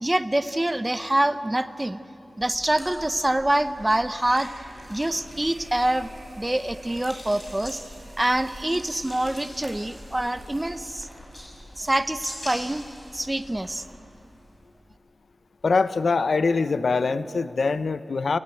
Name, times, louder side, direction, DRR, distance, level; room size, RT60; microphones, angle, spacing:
voice 1, 0.0-2.0 2.4-4.5 4.9-6.1 6.4-7.8 8.2-11.1 11.8-12.8 13.1-13.8, right 1 dB, 15° right, 12 dB, 0.7 m, -25 dB
sound 1, 2.4-14.6, equal, 25° left, 7.0 m, -44 dB
sound 2, 5.3-10.8, right 1 dB, 35° right, 3.0 m, -48 dB
voice 2, 15.6-18.4, left 4 dB, 75° left, 13 dB, 0.7 m, -23 dB
28.5 x 16.0 x 9.0 m, 2.7 s
wide cardioid pair, 110°, 0 cm